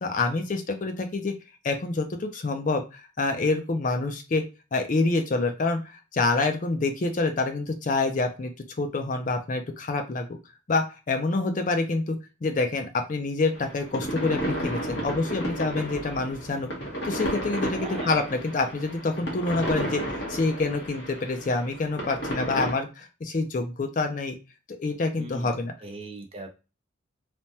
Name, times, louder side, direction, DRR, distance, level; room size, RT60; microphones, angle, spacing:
voice 1, 0.0-1.3 1.6-4.4 4.7-8.5 8.8-10.4 10.7-16.7 17.0-20.0 20.3-24.4 24.8-25.7, left 3 dB, 40° left, 6 dB, 0.4 m, -27 dB
sound 1, 13.5-22.7, right 1 dB, 55° left, 1.0 m, -33 dB
voice 2, 17.8-18.1 25.2-25.5 25.8-26.5, right 2 dB, 30° right, 4 dB, 0.5 m, -38 dB
3.3 x 2.1 x 2.7 m, 0.29 s
head